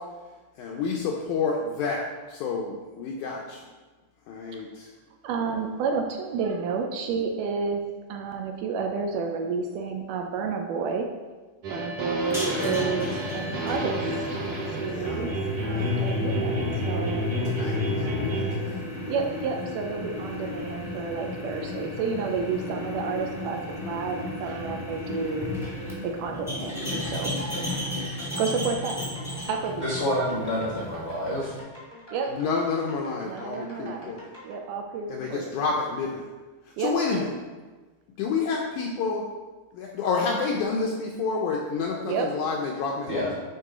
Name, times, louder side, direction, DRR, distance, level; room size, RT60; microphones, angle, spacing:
voice 1, 0.6-3.6 4.3-4.9 14.9-15.2 15.8-16.0 17.5-18.9 27.3-27.8 32.3-34.3 35.1-36.3 36.8-37.3 38.2-39.2 39.7-43.3, left 4 dB, 80° left, 0 dB, 1.8 m, -29 dB
voice 2, 5.2-7.8 8.1-11.1 11.7-15.3 15.6-17.2 19.1-25.5 26.0-26.8 27.1-27.3 28.4-29.0 29.5-29.9 32.1-32.3 33.2-34.1 34.4-35.5 36.8-37.3 42.0-42.3, right 5 dB, 80° right, 3 dB, 2.0 m, -30 dB
sound 1, 11.6-18.6, equal, 55° right, 1.7 m, -29 dB
sound 2, 12.2-31.6, left 1 dB, 5° right, 0.5 m, -34 dB
sound 3, 26.9-34.6, left 1 dB, 30° left, 0.8 m, -47 dB
voice 3, 29.8-31.5 43.1-43.3, equal, 65° left, -8 dB, 0.6 m, -28 dB
8.3 x 4.6 x 3.7 m, 1.3 s
omnidirectional pair, 4.1 m